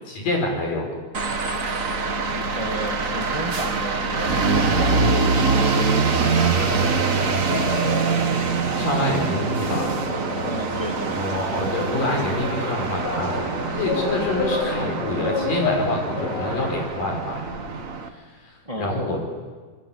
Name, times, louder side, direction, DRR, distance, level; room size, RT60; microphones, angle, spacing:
voice 1, 0.1-0.9 8.8-9.9 11.2-17.8 18.1-19.2, left 1 dB, 65° left, 2 dB, 7.1 m, -27 dB
sound 1, 1.1-18.1, right 4 dB, 60° right, 0.8 m, -24 dB
voice 2, 2.3-6.5 10.4-11.2 18.6-19.2, equal, 15° right, 2 dB, 1.4 m, -32 dB
sound 2, 7.5-16.8, left 3 dB, 90° left, 6.2 m, -30 dB
26.5 x 22.0 x 8.9 m, 1.4 s
omnidirectional pair, 4.1 m